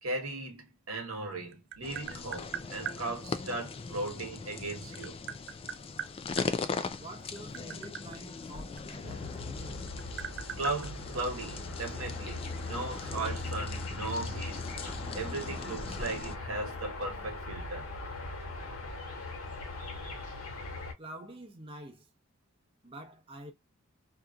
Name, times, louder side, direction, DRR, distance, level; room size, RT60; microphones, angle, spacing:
voice 1, 0.0-5.2 10.6-14.8 15.1-17.9, right 2 dB, 75° right, 0.9 m, -37 dB
Tap, 1.1-3.0 4.3-6.5 7.2-9.4 9.7-11.7, right 9 dB, 55° right, 0.4 m, -41 dB
sound 1, 1.8-16.4, left 4 dB, 25° left, 0.3 m, -40 dB
voice 2, 7.0-9.8 21.0-22.1 22.8-23.5, right 1 dB, 25° right, 0.7 m, -47 dB
sound 2, 9.0-20.9, left 2 dB, 70° left, 1.3 m, -40 dB
2.8 x 2.5 x 2.3 m
head